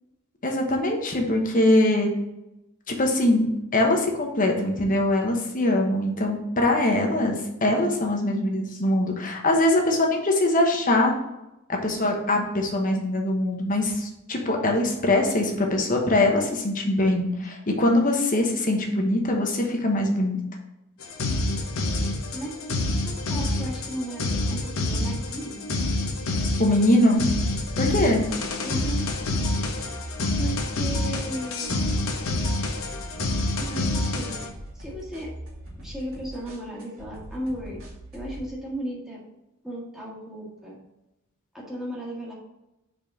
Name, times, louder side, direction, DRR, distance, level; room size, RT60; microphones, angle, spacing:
voice 1, 0.4-2.1 2.9-11.1 11.7-20.4 26.6-27.2 27.8-28.2, left 1 dB, 40° left, 2 dB, 1.1 m, -22 dB
sound 1, 21.0-34.5, left 2 dB, 75° left, 1.0 m, -27 dB
voice 2, 22.0-22.6 23.0-25.6 28.6-29.0 30.4-31.8 33.6-35.3 35.8-37.8 38.1-39.2 39.6-40.7 41.5-42.3, right 1 dB, ahead, -5 dB, 1.7 m, -35 dB
sound 2, 27.1-38.5, equal, 70° right, 2.6 m, -42 dB
5.3 x 4.2 x 6.1 m, 0.91 s
head